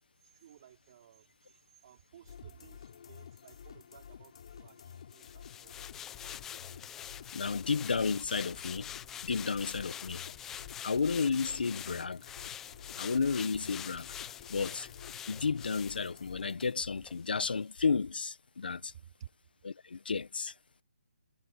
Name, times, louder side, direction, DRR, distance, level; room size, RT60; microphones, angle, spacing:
voice 1, 0.3-1.3 1.8-5.7 18.9-19.3, right 10 dB, 25° right, 4.3 m, -55 dB
sound 1, 2.3-16.7, left 8 dB, 35° left, 7.7 m, -51 dB
sound 2, 5.1-16.7 17.0-17.2, left 10 dB, 5° left, 1.0 m, -45 dB
voice 2, 7.3-8.9 9.2-10.2 10.8-12.3 13.0-14.1 14.5-14.9 15.3-18.9 19.6-20.5, left 5 dB, 65° left, 1.4 m, -32 dB
hypercardioid pair, 175°, 6 cm